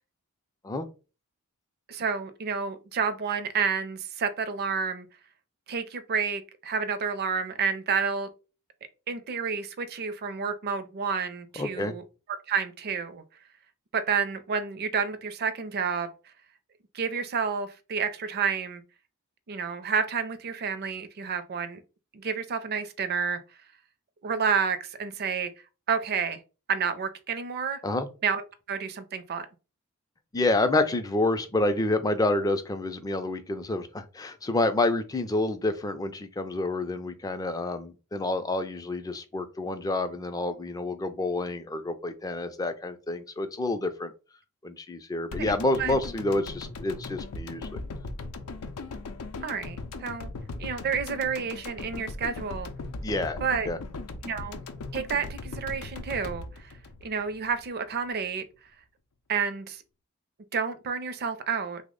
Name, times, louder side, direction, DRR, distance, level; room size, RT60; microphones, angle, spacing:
voice 1, 1.9-5.1 5.7-8.3 9.1-12.0 12.5-13.2 13.9-16.1 16.9-18.8 19.5-21.8 22.1-23.4 24.2-25.5 25.9-26.4 26.7-27.8 28.2-28.4 28.7-29.5 45.5-45.9 49.4-50.3 50.6-52.7 53.4-53.7 54.2-54.6 54.9-56.7 57.0-58.4 59.3-59.8 60.5-61.8, right 6 dB, 45° right, 0.4 m, -30 dB
voice 2, 11.6-11.9 27.8-28.1 30.3-44.1 44.6-47.8 53.0-53.4 53.7-53.8, left 2 dB, 15° left, 0.3 m, -28 dB
sound 1, 45.3-57.6 57.9-58.0, left 3 dB, 80° left, 0.5 m, -39 dB
3.3 x 2.1 x 3.6 m
head